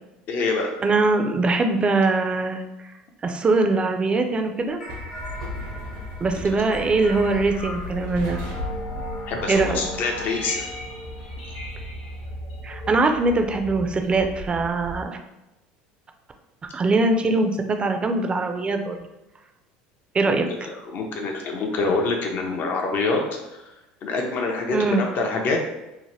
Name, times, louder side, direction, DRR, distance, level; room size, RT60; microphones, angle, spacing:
voice 1, 0.3-0.7 9.3-10.6 20.3-20.4 20.6-23.2 23.5-23.6 24.0-25.6, left 3 dB, 50° left, 1 dB, 0.5 m, -26 dB
voice 2, 0.8-2.6 3.2-4.8 6.2-8.4 9.5-9.8 12.6-15.2 16.7-19.1 20.1-20.7 24.7-25.0, right 3 dB, 25° right, 5 dB, 0.4 m, -22 dB
sound 1, 4.6-15.1, left 1 dB, 80° right, 0.7 m, -36 dB
sound 2, 4.8-13.7, left 1 dB, 85° left, 1.0 m, -37 dB
2.8 x 2.1 x 3.0 m, 0.95 s
supercardioid pair, 85°, 4 cm